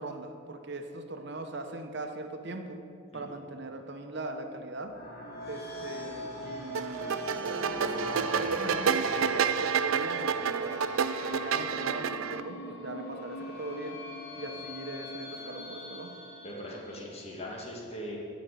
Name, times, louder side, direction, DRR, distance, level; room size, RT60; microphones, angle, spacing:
voice 1, 0.0-2.8 3.1-5.0 5.5-10.9 11.2-14.0 14.4-16.1, right 2 dB, 55° right, 5 dB, 0.9 m, -40 dB
sound 1, 4.7-17.3, left 1 dB, 50° left, 2.8 m, -42 dB
sound 2, 6.7-12.4, right 6 dB, 75° right, 0.4 m, -29 dB
voice 2, 16.4-18.2, equal, 30° left, -2 dB, 1.8 m, -40 dB
11.5 x 5.2 x 8.2 m, 2.5 s
head